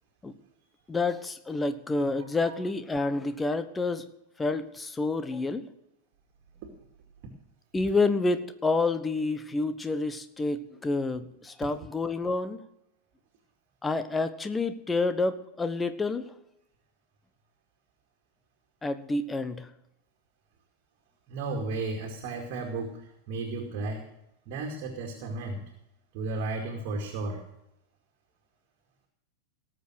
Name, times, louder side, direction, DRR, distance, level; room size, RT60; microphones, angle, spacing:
voice 1, 0.9-4.0 4.4-5.7 7.7-12.6 13.8-16.3 18.8-19.7, left 3 dB, 10° left, 11 dB, 1.1 m, -28 dB
voice 2, 21.3-23.0 23.3-24.0 24.5-25.6 26.1-27.4, right 3 dB, 45° right, 1 dB, 2.4 m, -33 dB
18.0 x 7.7 x 6.3 m, 0.83 s
figure-of-eight pair, 90°, 0 cm